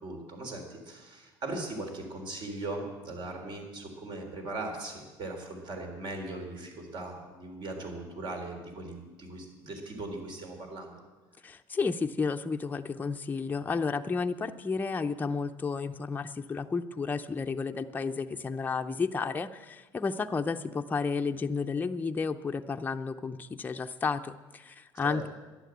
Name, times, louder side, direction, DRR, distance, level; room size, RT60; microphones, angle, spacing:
voice 1, 0.0-11.0 25.0-25.2, right 2 dB, 50° right, 3 dB, 3.7 m, -39 dB
voice 2, 11.4-25.3, left 4 dB, 15° left, 6 dB, 0.6 m, -32 dB
12.0 x 11.0 x 8.0 m, 1.2 s
cardioid pair, 105°, 10 cm